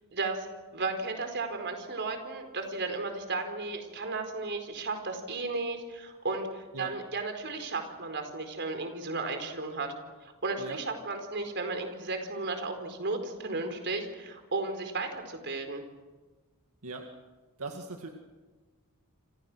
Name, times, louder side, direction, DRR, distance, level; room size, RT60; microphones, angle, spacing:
voice 1, 0.1-0.5 0.7-9.9 10.2-15.8, right 3 dB, 55° right, 6 dB, 4.6 m, -34 dB
voice 2, 17.6-18.1, right 3 dB, 80° right, 3 dB, 2.1 m, -39 dB
28.0 x 27.5 x 6.4 m, 1.3 s
head